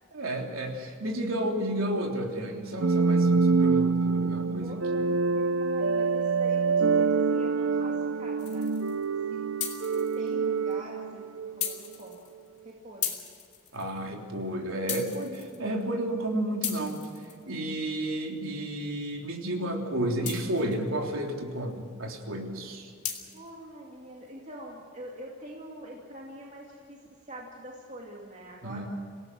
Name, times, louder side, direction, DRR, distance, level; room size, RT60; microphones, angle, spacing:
voice 1, 0.1-4.8 13.7-17.0 17.5-22.9 28.6-28.9, right 1 dB, 85° right, 1 dB, 3.4 m, -32 dB
sound 1, 2.8-11.8, right 4 dB, 65° right, 0.7 m, -26 dB
voice 2, 4.6-8.7 9.3-9.4 10.1-11.3 11.6-12.2 12.6-13.2 23.3-27.0 27.3-28.9, right 1 dB, 35° right, -2 dB, 2.5 m, -44 dB
sound 2, 8.4-9.0 9.6-10.3 10.7-10.8 11.6-12.6 13.0-14.0 14.9-15.8 16.6-17.8 20.3-20.9 23.0-23.5, left 9 dB, 35° left, 2.7 m, -36 dB
26.5 x 18.0 x 6.3 m, 2.3 s
head